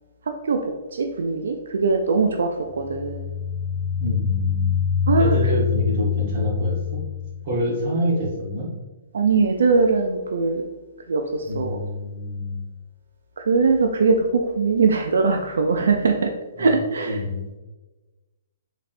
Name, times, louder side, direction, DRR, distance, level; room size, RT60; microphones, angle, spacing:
voice 1, 0.9-3.2 5.1-5.4 9.1-10.6 11.1-11.8 13.4-16.3 16.6-17.2, right 4 dB, 85° right, 4 dB, 0.4 m, -21 dB
sound 1, 2.7-7.4, left 7 dB, 15° left, 0.7 m, -24 dB
voice 2, 4.0-4.8 5.2-7.0 7.4-8.7 11.4-12.6 16.6-16.8 17.1-17.6, left 1 dB, 40° right, -4 dB, 1.4 m, -27 dB
4.1 x 3.2 x 2.6 m, 1.2 s
hypercardioid pair, 165°, 0 cm